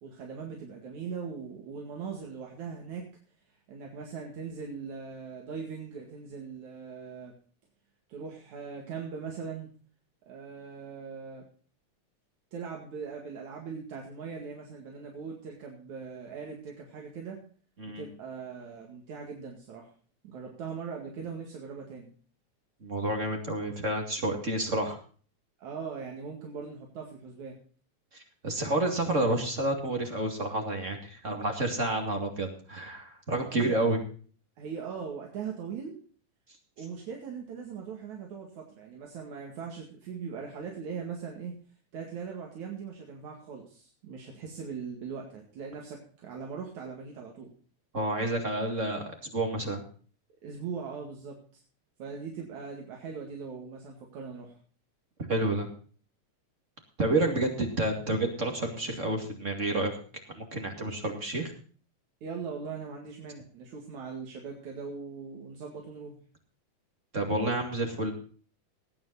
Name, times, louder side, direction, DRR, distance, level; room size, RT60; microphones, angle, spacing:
voice 1, 0.0-3.0 3.7-7.3 8.1-9.7 10.3-11.4 12.5-17.4 18.0-19.9 20.2-22.1 25.6-27.6 33.5-33.8 34.6-36.0 36.8-41.5 41.9-47.5 50.4-51.6 52.0-54.6 62.2-66.2, right 6 dB, 75° right, 0 dB, 3.4 m, -40 dB
voice 2, 22.8-25.0 28.1-34.0 47.9-49.8 55.3-55.7 57.0-59.9 60.3-61.5 67.1-68.1, right 1 dB, 25° right, 3 dB, 2.3 m, -29 dB
19.0 x 9.0 x 4.1 m, 0.43 s
omnidirectional pair, 3.4 m